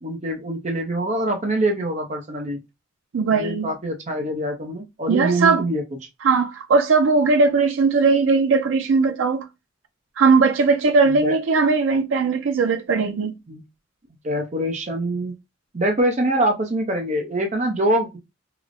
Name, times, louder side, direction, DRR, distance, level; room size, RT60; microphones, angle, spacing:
voice 1, 0.0-2.6 3.3-5.8 11.1-11.4 13.5-13.6 14.2-15.3 15.7-18.2, right 1 dB, 40° right, 0.6 m, -24 dB
voice 2, 3.1-3.7 5.1-5.6 6.2-9.5 10.2-13.3, right 4 dB, 90° right, 0.4 m, -19 dB
4.8 x 2.0 x 2.5 m
head